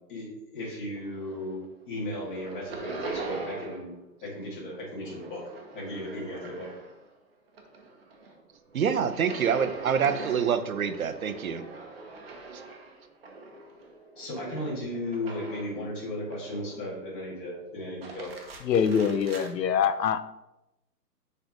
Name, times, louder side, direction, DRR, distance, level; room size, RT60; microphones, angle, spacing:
voice 1, 0.1-1.6 1.9-3.9 4.2-5.4 5.7-6.7 14.2-18.3, left 1 dB, 30° left, -5 dB, 2.2 m, -35 dB
sound 1, 0.9-1.7 1.9-4.0 4.2-7.1 7.5-15.8 16.3-17.0 17.8-19.5, right 3 dB, 35° right, 1.0 m, -42 dB
voice 2, 8.7-11.6, right 7 dB, 55° right, 9 dB, 0.7 m, -26 dB
voice 3, 18.6-20.2, left 7 dB, 80° left, 12 dB, 0.8 m, -24 dB
6.5 x 3.3 x 5.2 m, 0.91 s
hypercardioid pair, 165°, 49 cm